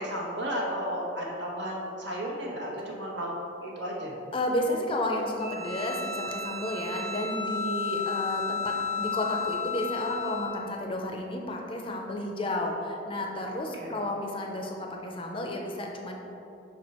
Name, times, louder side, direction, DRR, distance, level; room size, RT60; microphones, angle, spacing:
voice 1, 0.0-3.3 3.6-4.1 13.7-14.0, equal, 65° right, -2 dB, 1.1 m, -33 dB
voice 2, 4.3-16.1, left 1 dB, 25° left, 1 dB, 0.5 m, -32 dB
Bowed string instrument, 5.4-10.6, left 5 dB, 20° right, 1.3 m, -33 dB
5.5 x 4.4 x 4.2 m, 2.8 s
head